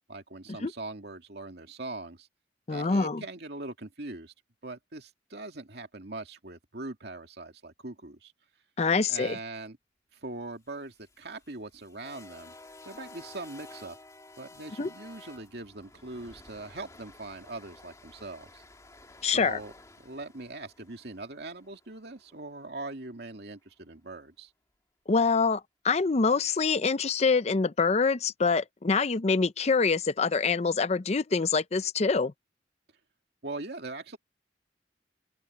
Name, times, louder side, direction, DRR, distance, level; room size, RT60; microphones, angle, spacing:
voice 1, 0.1-2.3 2.7-4.3 4.6-8.3 9.1-9.8 10.1-12.5 12.9-14.0 14.4-18.6 19.2-19.7 20.0-24.5 33.4-34.2, right 2 dB, 60° right, 2.5 m, -41 dB
voice 2, 2.7-3.2 8.8-9.4 14.8-14.9 19.2-19.6 25.1-32.3, left 4 dB, 35° left, 0.5 m, -25 dB
sound 1, 10.7-22.9, left 2 dB, 20° left, 2.4 m, -52 dB
open air
head